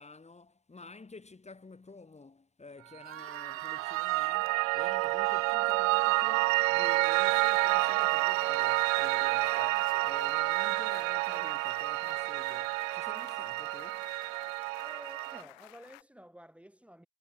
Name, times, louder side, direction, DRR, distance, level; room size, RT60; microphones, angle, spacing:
voice 1, 0.0-14.1, left 3 dB, 15° left, 3.4 m, -51 dB
sound 1, 3.0-9.9, right 8 dB, 25° right, 2.4 m, -51 dB
Piano, 3.0-15.4, right 24 dB, 60° right, 0.5 m, -29 dB
sound 2, 7.3-16.0, left 33 dB, 55° left, 1.1 m, -50 dB
voice 2, 14.8-17.1, equal, 5° right, 3.2 m, -52 dB
figure-of-eight pair, 75°, 47 cm